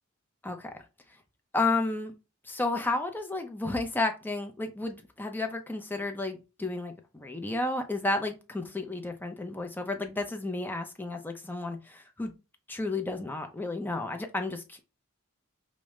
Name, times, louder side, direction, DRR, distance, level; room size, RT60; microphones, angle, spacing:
voice 1, 1.5-2.1 2.5-12.3 12.7-14.8, left 2 dB, 10° left, 0.5 m, -32 dB
4.8 x 2.1 x 3.1 m
head